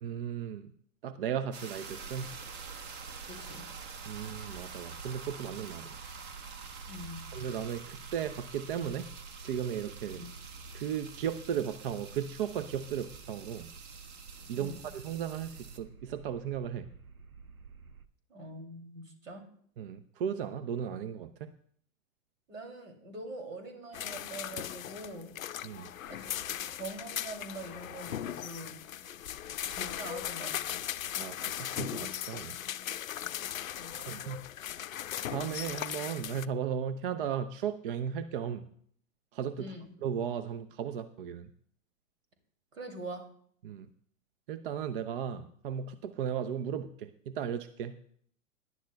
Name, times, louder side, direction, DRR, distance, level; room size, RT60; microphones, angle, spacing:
voice 1, 0.0-0.7 1.0-2.3 4.1-6.0 7.3-9.1 9.4-10.2 10.7-13.7 14.5-16.9 19.8-21.5 25.6-25.9 31.1-32.6 33.9-34.4 35.3-38.6 39.3-39.7 40.0-41.5 43.6-43.9 44.5-47.9, right 8 dB, 40° right, 13 dB, 0.6 m, -36 dB
sound 1, 1.5-15.8, right 5 dB, 25° right, 1.0 m, -48 dB
sound 2, 1.8-18.1, right 4 dB, 90° right, 0.7 m, -50 dB
voice 2, 3.3-3.6 6.8-7.2 10.1-10.3 14.5-14.8 18.3-19.4 22.5-25.3 26.1-28.7 29.7-30.5 31.1-31.2 33.8-34.1 39.6-39.9 42.7-43.2, right 1 dB, 65° right, 4 dB, 2.9 m, -44 dB
sound 3, 23.9-36.5, left 11 dB, 70° left, 0.5 m, -38 dB
19.0 x 10.5 x 2.3 m, 0.63 s
figure-of-eight pair, 105°, 41 cm